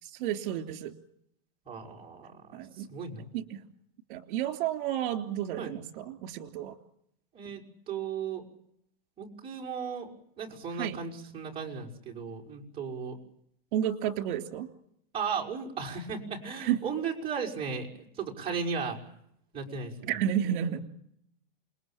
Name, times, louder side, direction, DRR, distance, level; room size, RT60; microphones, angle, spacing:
voice 1, 0.0-0.9 2.5-2.9 3.3-3.6 4.1-6.8 10.8-11.0 13.7-14.7 16.6-16.8 20.0-20.8, right 10 dB, 55° right, 7 dB, 3.4 m, -31 dB
voice 2, 1.7-3.3 5.6-5.7 7.3-8.5 9.2-10.1 10.4-13.2 15.1-17.9 18.2-19.0 19.5-20.2 20.4-20.8, right 6 dB, 20° right, -2 dB, 5.4 m, -36 dB
28.0 x 21.5 x 8.9 m, 0.75 s
supercardioid pair, 155°, 29 cm